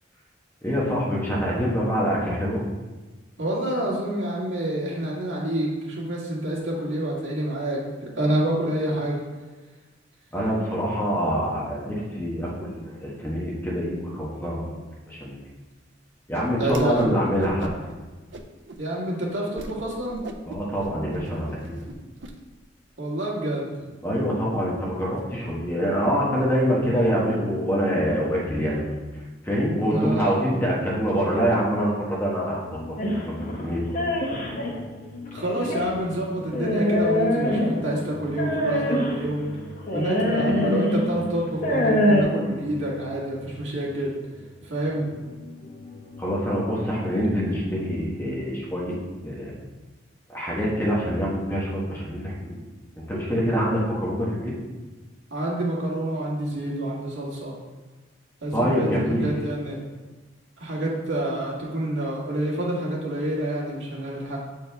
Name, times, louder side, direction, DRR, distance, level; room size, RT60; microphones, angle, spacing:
voice 1, 0.6-2.6 10.3-14.8 15.1-15.4 16.3-17.7 20.5-21.7 24.0-29.0 29.4-32.8 33.0-34.4 46.2-48.9 49.2-49.6 50.3-52.6 53.1-54.5 58.5-59.2, equal, 10° left, -5 dB, 1.2 m, -25 dB
voice 2, 3.4-9.2 16.6-17.2 18.8-20.2 23.0-23.7 29.9-30.3 35.3-39.5 39.9-44.1 44.6-45.1 55.3-57.5 58.4-59.8 60.6-64.4, right 1 dB, 90° right, -6 dB, 1.9 m, -28 dB
Whoosh swoosh swish, 16.7-17.1 17.4-17.9 18.3-18.8 19.2-19.3 19.5-19.7 20.1-22.3, right 2 dB, 75° right, 0.5 m, -39 dB
sound 1, 32.3-48.0, left 1 dB, 60° left, 1.2 m, -43 dB
sound 2, 33.0-34.7 35.4-35.9 36.5-37.9 38.4-39.2 39.9-41.0 41.5-42.2, left 1 dB, 45° left, 1.0 m, -23 dB
7.1 x 4.6 x 3.5 m, 1.2 s
head